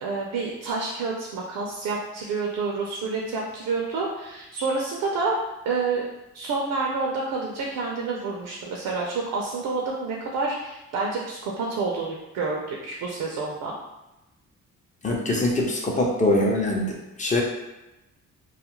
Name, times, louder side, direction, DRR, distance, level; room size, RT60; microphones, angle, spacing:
voice 1, 0.0-5.4 5.7-6.0 6.3-13.7, right 4 dB, 80° right, -2 dB, 0.6 m, -28 dB
voice 2, 15.0-16.9 17.2-17.4, left 1 dB, 25° left, -1 dB, 0.6 m, -23 dB
2.4 x 2.1 x 3.0 m, 0.97 s
cardioid pair, 90°, 30 cm